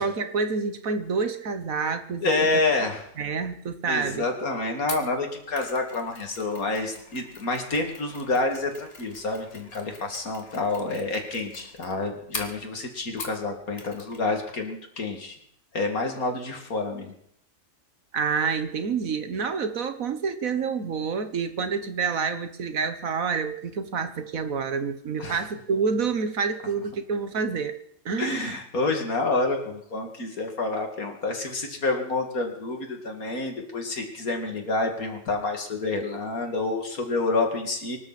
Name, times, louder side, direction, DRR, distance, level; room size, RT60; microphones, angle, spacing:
voice 1, 0.0-2.6 3.2-4.3 18.1-27.8 28.0-28.6, right 5 dB, 70° right, 9 dB, 1.7 m, -28 dB
voice 2, 2.2-3.0 3.9-15.4 15.7-17.1 25.2-25.4 28.2-38.0, left 3 dB, 75° left, 3 dB, 2.9 m, -28 dB
Mechanisms, 4.9-13.5 13.8-14.2 14.5-14.6, left 3 dB, 50° left, 2.3 m, -42 dB
24.5 x 12.5 x 4.3 m, 0.71 s
omnidirectional pair, 1.5 m